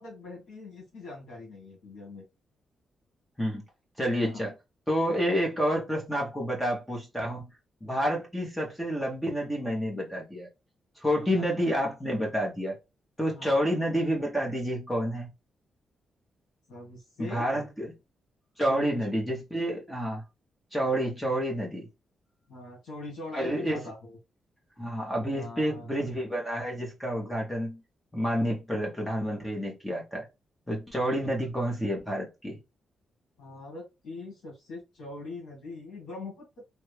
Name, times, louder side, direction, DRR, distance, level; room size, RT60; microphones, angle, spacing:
voice 1, 0.0-2.2 4.2-4.4 11.3-11.4 13.3-13.5 16.7-17.5 18.7-18.8 22.5-24.2 25.3-25.9 33.4-36.6, left 2 dB, 80° left, 1.5 m, -42 dB
voice 2, 4.0-4.5 4.9-7.5 7.8-10.5 11.0-12.8 13.2-15.3 17.2-17.9 18.6-20.2 20.7-21.9 23.3-23.8 24.8-27.8 28.1-30.3 30.7-32.6, equal, 5° left, 0.8 m, -29 dB
3.1 x 2.3 x 3.2 m
wide cardioid pair, 160°, 0 cm